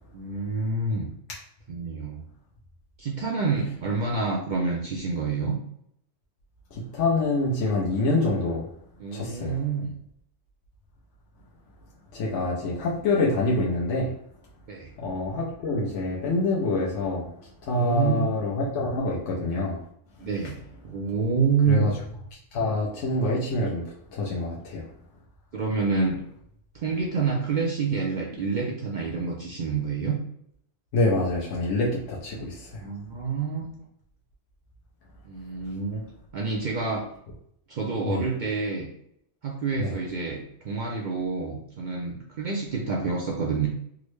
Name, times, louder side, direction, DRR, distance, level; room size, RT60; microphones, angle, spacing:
voice 1, 0.1-1.1 1.7-2.3 3.0-5.6 9.0-9.9 14.7-14.9 17.8-18.3 20.2-20.6 20.8-22.0 24.5-24.6 25.5-26.2 26.7-30.2 32.8-33.7 35.2-36.0 36.3-37.0 37.7-38.9 39.4-43.7, right 4 dB, 60° right, -2 dB, 0.5 m, -27 dB
voice 2, 6.7-8.6 9.1-9.5 12.1-14.1 15.0-17.2 17.6-19.8 21.7-21.9 22.5-23.8 24.1-24.8 30.9-32.7 38.0-38.2 39.8-39.9, left 2 dB, 80° left, -4 dB, 1.0 m, -26 dB
3.6 x 2.1 x 3.1 m, 0.71 s
omnidirectional pair, 1.3 m